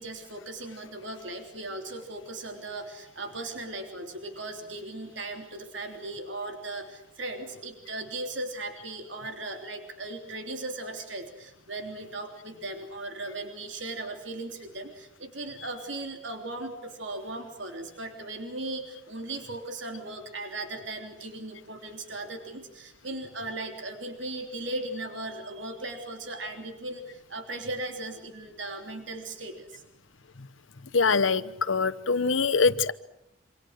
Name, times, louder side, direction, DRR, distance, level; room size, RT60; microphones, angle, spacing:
voice 1, 0.0-29.8, right 2 dB, 70° right, 4 dB, 3.3 m, -37 dB
voice 2, 30.9-32.9, left 4 dB, 90° left, 14 dB, 1.0 m, -23 dB
27.5 x 26.0 x 6.5 m, 0.83 s
head